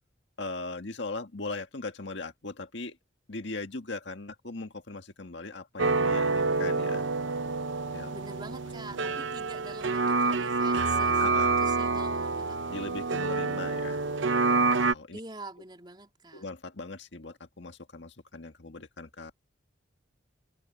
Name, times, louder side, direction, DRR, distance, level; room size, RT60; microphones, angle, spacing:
voice 1, 0.4-3.0 3.3-7.1 7.9-8.1 8.9-9.2 11.2-11.6 12.7-14.0 14.7-15.2 16.3-19.4, left 3 dB, 70° left, 1.7 m, -39 dB
sound 1, 5.8-14.9, right 3 dB, 80° right, 0.8 m, -27 dB
voice 2, 8.1-11.2 11.6-12.9 15.1-16.5, right 2 dB, 25° right, 3.4 m, -45 dB
head